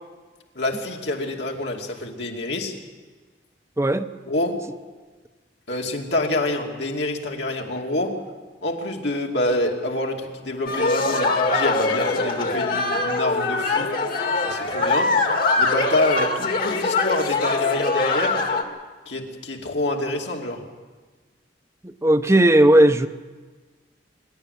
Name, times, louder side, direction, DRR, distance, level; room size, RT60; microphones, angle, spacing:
voice 1, 0.5-2.7 4.3-4.6 5.7-8.2 8.6-13.9 14.4-15.1 15.6-18.4 19.1-20.6, left 1 dB, 70° left, 1 dB, 2.7 m, -27 dB
voice 2, 3.8-4.1 21.8-23.1, right 1 dB, 15° right, 10 dB, 0.8 m, -16 dB
sound 1, 10.7-18.6, left 3 dB, 55° left, 2.0 m, -22 dB
25.5 x 12.0 x 9.9 m, 1.4 s
head